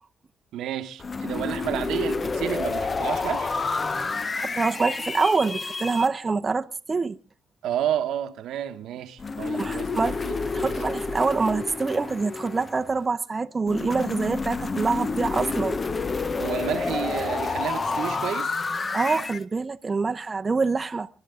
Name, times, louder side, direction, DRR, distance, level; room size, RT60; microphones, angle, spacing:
voice 1, 0.5-3.5 7.6-10.0 10.2-10.8 16.4-18.5, right 11 dB, 80° right, 1.0 m, -31 dB
sound 1, 1.0-6.1 9.2-13.0 13.7-19.4, left 4 dB, 35° left, 0.7 m, -29 dB
voice 2, 4.4-7.2 9.5-15.8 18.9-21.1, right 4 dB, 30° right, 0.7 m, -26 dB
29.0 x 11.5 x 3.7 m
cardioid pair, 90°, 0 cm